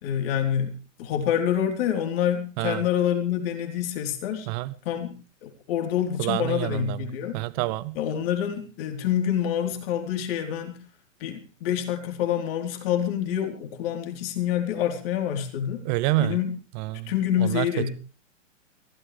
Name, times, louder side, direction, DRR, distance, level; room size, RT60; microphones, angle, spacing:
voice 1, 0.0-4.5 4.9-5.1 5.4-7.4 8.0-10.8 11.2-15.8 16.2-16.5 17.1-17.9, left 9 dB, 50° left, 4.1 m, -27 dB
voice 2, 6.2-7.0 7.3-8.0 15.8-16.4 16.7-17.1 17.4-17.7, right 19 dB, 35° right, 0.8 m, -27 dB
23.0 x 16.5 x 3.4 m
hypercardioid pair, 120°, 37 cm